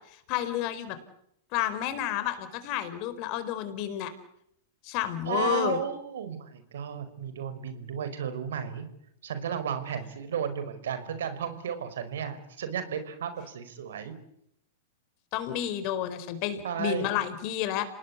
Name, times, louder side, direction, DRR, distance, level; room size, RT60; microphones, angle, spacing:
voice 1, 0.3-1.0 1.5-4.1 4.8-5.8 15.3-17.9, left 12 dB, 45° left, 11 dB, 4.6 m, -30 dB
voice 2, 5.0-8.9 9.2-14.1 16.6-17.1, right 7 dB, 75° right, 11 dB, 5.0 m, -33 dB
28.0 x 19.5 x 8.4 m, 0.75 s
hypercardioid pair, 120°, 0 cm